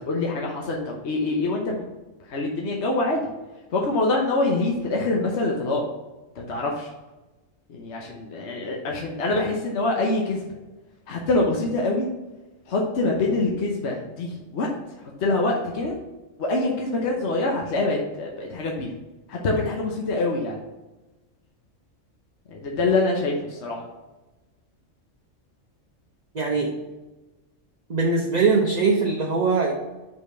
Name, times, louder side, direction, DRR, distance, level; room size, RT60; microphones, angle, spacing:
voice 1, 0.0-1.8 2.3-3.2 3.7-5.8 6.4-6.9 7.7-10.5 11.1-12.1 12.7-14.7 15.2-16.0 16.4-18.9 19.3-20.6 22.5-23.9, left 2 dB, 60° left, 0 dB, 1.2 m, -25 dB
voice 2, 26.3-26.7 27.9-29.7, right 4 dB, 40° right, -1 dB, 0.8 m, -21 dB
5.1 x 4.2 x 5.5 m, 1.1 s
omnidirectional pair, 1.3 m